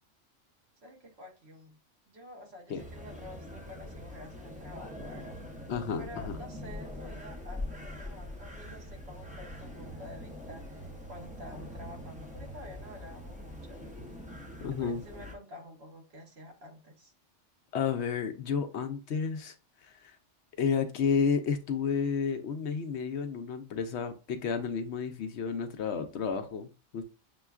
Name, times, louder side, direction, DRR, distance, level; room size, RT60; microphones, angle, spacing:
voice 1, 0.8-1.8 2.1-5.4 6.0-13.8 14.6-17.1, left 1 dB, 60° right, 1.3 m, -49 dB
sound 1, 2.8-15.3, left 1 dB, 10° right, 0.5 m, -43 dB
voice 2, 5.7-6.4 14.6-15.0 17.7-19.5 19.8-20.2 20.6-27.1, left 6 dB, 70° left, 0.9 m, -31 dB
6.8 x 2.3 x 2.3 m
omnidirectional pair, 1.2 m